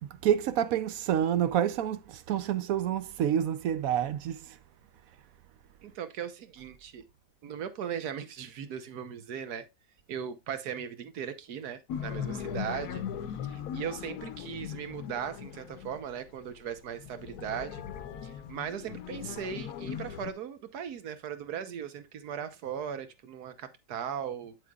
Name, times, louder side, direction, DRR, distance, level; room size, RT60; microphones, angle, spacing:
voice 1, 0.0-4.6, right 10 dB, 70° right, 1.0 m, -28 dB
voice 2, 5.8-7.1 7.4-9.7 10.1-13.0 13.3-17.8 18.2-24.6, right 8 dB, 85° right, 1.5 m, -38 dB
sound 1, 11.9-16.2 16.9-20.3, left 8 dB, 85° left, 1.3 m, -39 dB
7.9 x 7.7 x 2.4 m
omnidirectional pair, 1.6 m